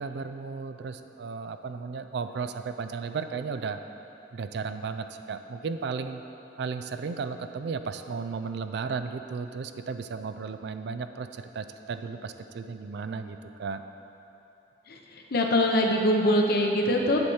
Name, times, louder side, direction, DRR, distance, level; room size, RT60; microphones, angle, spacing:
voice 1, 0.0-3.8 4.3-6.2 6.6-13.8, right 5 dB, 65° right, 9 dB, 0.4 m, -34 dB
voice 2, 15.3-17.2, left 1 dB, 60° left, 1 dB, 0.8 m, -23 dB
7.9 x 4.3 x 7.1 m, 2.9 s
head